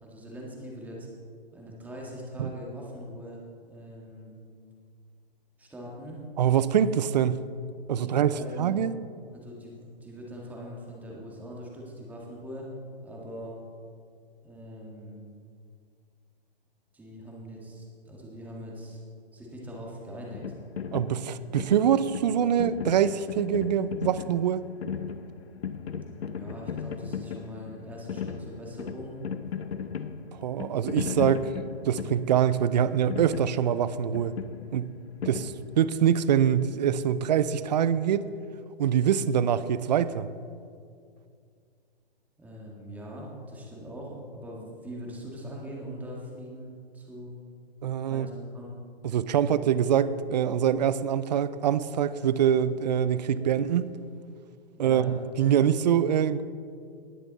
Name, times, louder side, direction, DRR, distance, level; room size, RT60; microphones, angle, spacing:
voice 1, 0.0-1.1 1.5-3.4 3.7-4.3 5.6-6.2 8.0-8.8 9.3-12.7 13.0-13.5 14.4-15.2 16.9-19.0 19.3-20.4 25.9-29.2 42.4-47.3 48.1-48.7 54.7-55.1, equal, 5° right, -3 dB, 1.8 m, -42 dB
voice 2, 6.4-7.5 7.9-8.9 20.9-24.7 30.4-31.5 31.9-34.3 34.7-34.9 35.2-38.2 38.8-40.3 47.8-48.3 49.0-53.8 54.8-56.4, right 9 dB, 45° right, 15 dB, 0.5 m, -24 dB
sound 1, 20.3-36.1, left 7 dB, 90° left, 0.8 m, -37 dB
19.0 x 6.9 x 4.1 m, 2.3 s
hypercardioid pair, 150°, 31 cm